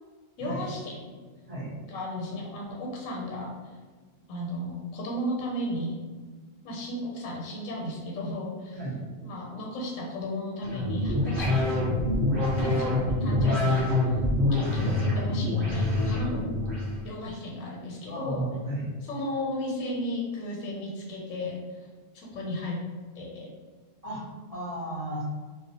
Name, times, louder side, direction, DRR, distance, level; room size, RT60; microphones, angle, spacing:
voice 1, 0.4-1.0 1.8-3.5 4.3-6.0 6.6-8.8 9.2-12.2 12.5-13.8 14.1-16.5 17.0-18.4 19.1-21.8 22.1-22.8 23.2-23.5, left 1 dB, 90° left, -2 dB, 1.0 m, -34 dB
sound 1, 10.6-17.0, left 2 dB, 10° right, 0.7 m, -25 dB
voice 2, 18.1-18.9 24.0-25.2, right 1 dB, 50° right, -7 dB, 0.4 m, -34 dB
2.3 x 2.1 x 2.7 m, 1.4 s
omnidirectional pair, 1.3 m